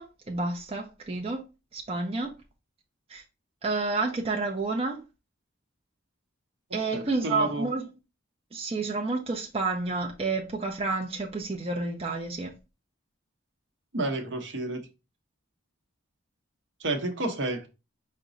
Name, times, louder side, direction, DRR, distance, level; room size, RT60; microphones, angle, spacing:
voice 1, 0.0-1.4 1.7-2.3 3.1-3.2 3.6-5.0 6.7-7.9 8.5-12.5, right 3 dB, 30° right, 0.5 m, -30 dB
voice 2, 6.9-7.7 13.9-14.8 16.8-17.7, right 2 dB, 65° right, 0.8 m, -30 dB
4.8 x 2.2 x 3.8 m
head